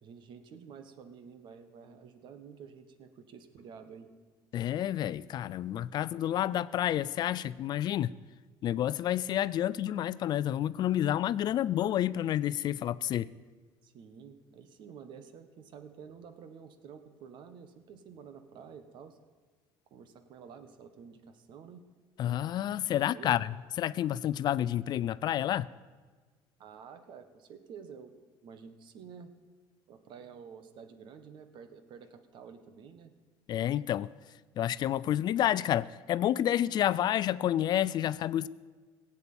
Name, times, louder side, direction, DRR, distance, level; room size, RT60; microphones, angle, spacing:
voice 1, 0.0-4.1 13.8-19.2 19.9-21.9 22.9-23.4 26.6-28.1 28.4-29.3 29.9-33.1, right 6 dB, 60° right, 1.5 m, -50 dB
voice 2, 4.5-8.1 8.6-13.3 22.2-23.5 23.8-25.7 33.5-34.1 34.6-38.5, left 11 dB, 50° left, 0.4 m, -29 dB
16.5 x 8.4 x 8.7 m
cardioid pair, 105°, 9 cm